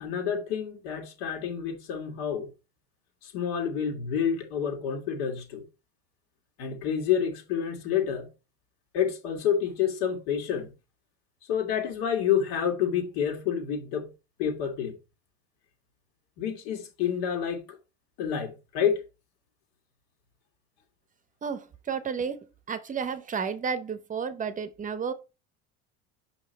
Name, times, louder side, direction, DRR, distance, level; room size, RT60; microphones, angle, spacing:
voice 1, 0.0-2.5 3.2-5.6 6.6-8.3 8.9-10.7 11.5-14.1 14.4-14.9 16.4-17.6 18.2-19.0, left 8 dB, 80° left, 2.6 m, -28 dB
voice 2, 21.4-25.1, right 6 dB, 25° right, 0.7 m, -32 dB
5.9 x 5.5 x 4.1 m
supercardioid pair, 125°, 30 cm